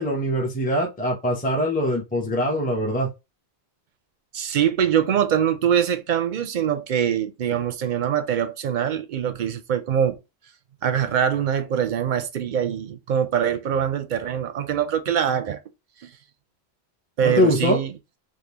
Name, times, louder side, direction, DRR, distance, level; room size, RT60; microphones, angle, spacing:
voice 1, 0.0-3.1 17.2-17.8, left 1 dB, 10° left, 0.8 m, -23 dB
voice 2, 4.3-10.1 10.8-15.6 16.0-16.1 17.2-17.9, right 9 dB, 55° right, 0.6 m, -23 dB
3.6 x 2.3 x 2.9 m
omnidirectional pair, 1.1 m